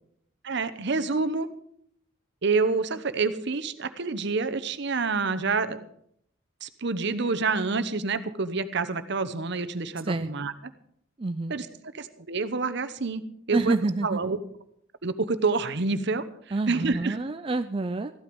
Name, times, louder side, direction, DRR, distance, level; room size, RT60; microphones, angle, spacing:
voice 1, 0.4-1.5 2.4-5.8 6.6-10.5 11.5-11.7 11.9-13.8 14.0-14.4 15.0-16.2 16.7-17.2, right 4 dB, 60° right, 12 dB, 0.9 m, -27 dB
voice 2, 11.2-11.5 13.5-14.2 16.5-18.1, right 3 dB, 25° right, 8 dB, 0.4 m, -27 dB
14.5 x 12.0 x 5.3 m, 0.69 s
head